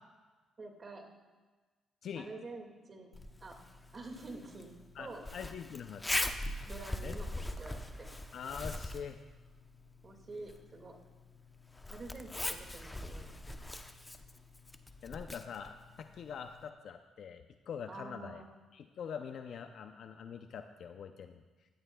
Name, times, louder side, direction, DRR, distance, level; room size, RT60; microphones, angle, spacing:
voice 1, 0.6-1.0 2.2-3.1 3.4-3.6 3.9-5.3 6.7-8.1 10.0-10.9 11.9-13.4 17.9-18.5, right 3 dB, 40° right, 3 dB, 1.9 m, -48 dB
Zipper (clothing), 3.1-16.7, left 1 dB, 15° left, 0.7 m, -42 dB
voice 2, 5.0-6.2 7.0-7.2 8.3-9.2 15.0-18.4 18.7-21.4, left 7 dB, 65° left, 7 dB, 0.5 m, -44 dB
16.5 x 12.5 x 2.3 m, 1.3 s
cardioid pair, 90°, 0 cm